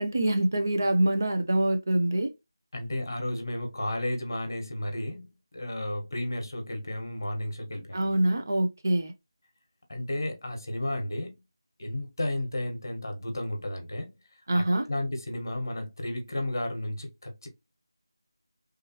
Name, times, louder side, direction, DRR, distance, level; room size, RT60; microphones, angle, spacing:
voice 1, 0.0-2.3 7.9-9.1 14.5-14.9, right 1 dB, 35° right, 0.5 m, -25 dB
voice 2, 2.7-5.3 5.5-8.2 9.9-11.4 11.8-14.1 14.5-17.5, left 1 dB, 50° left, 1.3 m, -33 dB
3.5 x 3.0 x 2.9 m
figure-of-eight pair, 180°, 2 cm